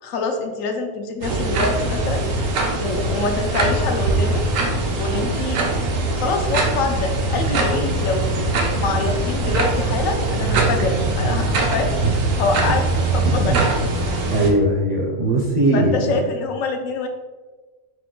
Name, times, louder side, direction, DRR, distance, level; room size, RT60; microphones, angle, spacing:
voice 1, 0.0-2.3 2.8-4.5 5.0-5.6 6.1-8.3 8.8-12.0 12.4-12.9 13.1-13.6 15.7-17.1, left 3 dB, 85° left, 5 dB, 1.0 m, -25 dB
sound 1, 1.2-14.5, right 2 dB, 85° right, 1.1 m, -22 dB
voice 2, 14.3-16.2, right 1 dB, 50° right, -3 dB, 0.5 m, -20 dB
5.0 x 2.2 x 3.8 m, 1.3 s
omnidirectional pair, 1.3 m